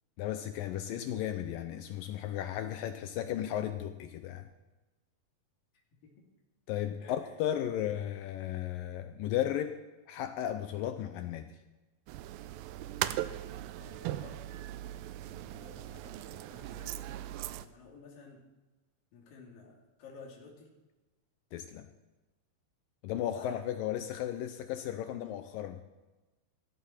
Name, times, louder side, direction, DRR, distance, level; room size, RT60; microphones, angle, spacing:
voice 1, 0.2-4.5 6.7-9.8 10.1-11.5 21.5-21.9 23.0-25.8, left 11 dB, 80° left, 9 dB, 2.1 m, -35 dB
sound 1, 12.1-17.7, right 13 dB, 80° right, 2.1 m, -39 dB
voice 2, 13.8-14.4 15.3-17.2 17.6-18.4 19.1-20.7 23.3-23.6, left 4 dB, 60° left, -2 dB, 4.3 m, -52 dB
16.5 x 14.5 x 4.4 m, 1.1 s
omnidirectional pair, 4.7 m